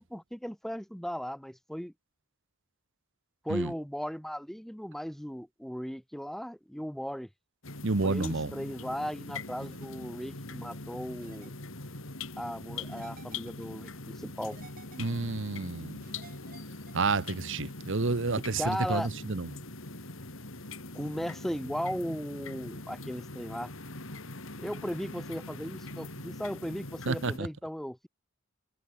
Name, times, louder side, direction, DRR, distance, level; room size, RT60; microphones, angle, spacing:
voice 1, 0.0-1.9 3.4-7.3 8.0-11.5 12.4-14.6 18.6-19.1 20.9-23.7 24.6-28.1, equal, ahead, 0.8 m, -37 dB
sound 1, 7.6-27.4, left 2 dB, 65° left, 4.5 m, -42 dB
voice 2, 7.8-8.5 15.0-16.0 16.9-19.5 27.1-27.5, right 3 dB, 60° right, 1.1 m, -30 dB
sound 2, 8.0-8.3 9.6-9.9 11.2-11.5 12.8-13.6 14.4-15.3 16.0-17.2, right 5 dB, 45° right, 2.6 m, -54 dB
head